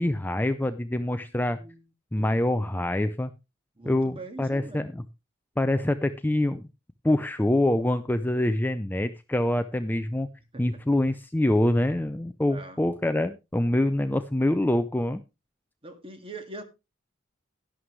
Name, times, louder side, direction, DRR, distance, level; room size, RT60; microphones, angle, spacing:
voice 1, 0.0-1.6 2.1-3.3 3.8-5.0 5.6-6.7 7.0-10.3 10.6-15.2, left 1 dB, 10° left, 0.5 m, -25 dB
voice 2, 1.4-1.8 2.1-2.4 3.8-4.8 10.5-10.8 12.5-12.8 15.8-16.6, right 2 dB, 30° right, 1.9 m, -42 dB
11.5 x 11.0 x 3.2 m
head